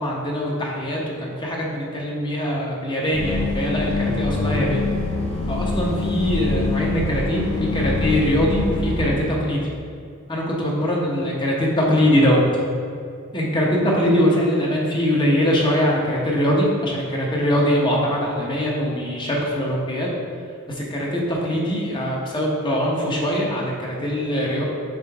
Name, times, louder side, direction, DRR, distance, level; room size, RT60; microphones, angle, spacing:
voice 1, 0.0-4.8 5.5-9.6 10.3-12.4 13.3-20.1 20.7-24.6, equal, 20° left, -3 dB, 1.0 m, -22 dB
sound 1, 3.1-9.1, left 3 dB, 85° left, 1.2 m, -24 dB
5.8 x 5.1 x 3.5 m, 2.4 s
head